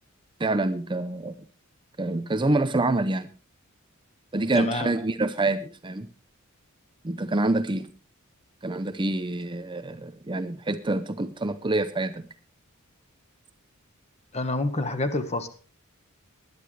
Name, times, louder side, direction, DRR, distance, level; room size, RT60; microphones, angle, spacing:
voice 1, 0.4-1.4 2.0-3.3 4.3-6.1 7.0-7.9 8.6-12.3, right 2 dB, 20° right, 0.6 m, -26 dB
voice 2, 4.5-4.9 14.3-15.5, left 2 dB, 30° left, 1.4 m, -27 dB
20.0 x 11.0 x 3.3 m
head